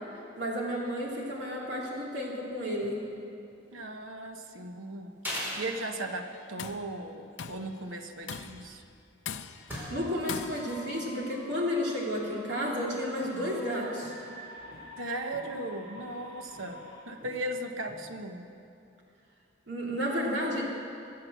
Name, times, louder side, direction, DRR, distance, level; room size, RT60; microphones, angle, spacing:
voice 1, 0.1-3.0 9.9-14.1 19.7-20.7, equal, 60° right, -3 dB, 3.1 m, -32 dB
sound 1, 2.8-3.1 3.4-3.9 4.4-4.5 5.2-5.7 6.3-6.5 6.9-7.0 8.1-10.5 10.7-12.0 12.4-12.6 13.2-13.6 14.0-14.3 14.6-16.8 17.2-17.5 17.7-18.1, equal, 10° right, 4.9 m, -43 dB
voice 2, 3.7-5.2 5.6-8.8 15.0-18.5, right 1 dB, 90° right, 5 dB, 1.2 m, -37 dB
Tools, 6.3-6.9 7.4-7.7 8.3-8.7 9.2-9.8 10.3-10.8, left 6 dB, 70° left, 0.6 m, -40 dB
sound 2, 9.8-17.0, left 1 dB, 20° left, 3.5 m, -48 dB
23.0 x 7.8 x 7.4 m, 2.6 s
head